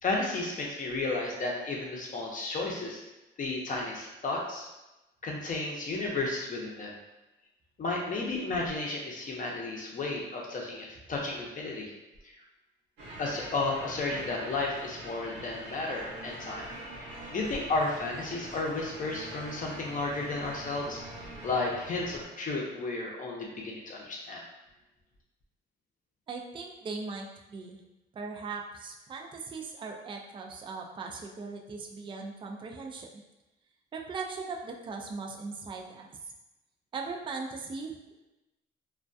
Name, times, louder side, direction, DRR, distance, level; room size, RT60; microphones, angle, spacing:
voice 1, 0.0-3.0 3.4-4.7 5.2-6.9 7.8-11.9 13.2-16.7 17.1-21.0 21.4-24.4, left 2 dB, 40° left, -1 dB, 0.6 m, -33 dB
sound 1, 13.0-22.3, right 1 dB, 80° right, 0.9 m, -44 dB
voice 2, 26.3-27.8 28.1-33.2 33.9-36.1 36.9-38.3, right 4 dB, 25° right, 1 dB, 0.3 m, -39 dB
2.2 x 2.2 x 2.5 m, 0.99 s
cardioid pair, 90°, 20 cm